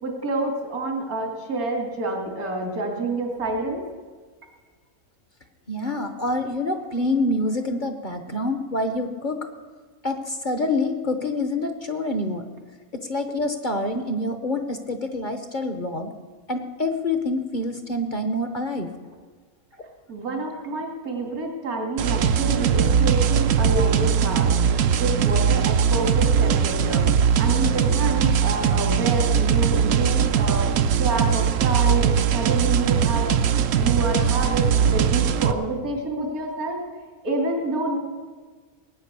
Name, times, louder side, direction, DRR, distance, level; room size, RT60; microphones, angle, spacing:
voice 1, 0.0-3.8 20.1-24.5 25.0-27.1 27.4-30.7 31.0-33.3 33.7-36.8 37.2-38.0, right 2 dB, 85° right, 1 dB, 2.9 m, -28 dB
voice 2, 5.7-9.4 10.0-12.4 12.9-16.1 16.5-18.9 19.8-19.9, left 2 dB, 40° left, 7 dB, 0.9 m, -26 dB
sound 1, 22.0-35.5, right 7 dB, 65° right, 1.0 m, -20 dB
18.5 x 9.0 x 6.7 m, 1.4 s
omnidirectional pair, 1.5 m